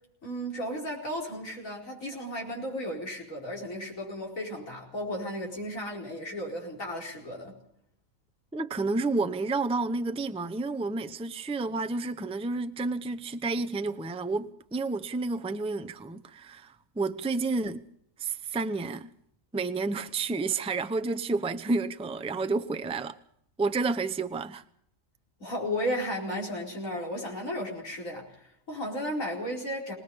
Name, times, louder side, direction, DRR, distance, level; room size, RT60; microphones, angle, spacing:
voice 1, 0.2-7.6 25.4-29.9, equal, 65° left, 5.1 m, -34 dB
voice 2, 8.5-17.8 18.2-19.1 19.5-23.2 23.6-24.6, right 3 dB, 5° right, 0.4 m, -30 dB
26.0 x 19.0 x 5.5 m
omnidirectional pair, 1.5 m